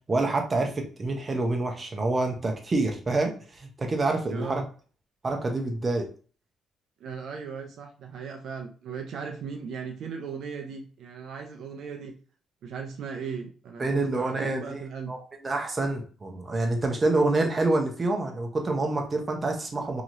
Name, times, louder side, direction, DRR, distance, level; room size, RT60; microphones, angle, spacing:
voice 1, 0.1-4.6 5.2-6.1 13.8-14.8 15.1-20.0, right 2 dB, 30° right, 3 dB, 0.7 m, -27 dB
voice 2, 4.3-4.6 7.0-12.1 12.6-15.1, right 6 dB, 70° right, 3 dB, 0.5 m, -37 dB
2.9 x 2.9 x 2.5 m, 0.40 s
cardioid pair, 90°, 0 cm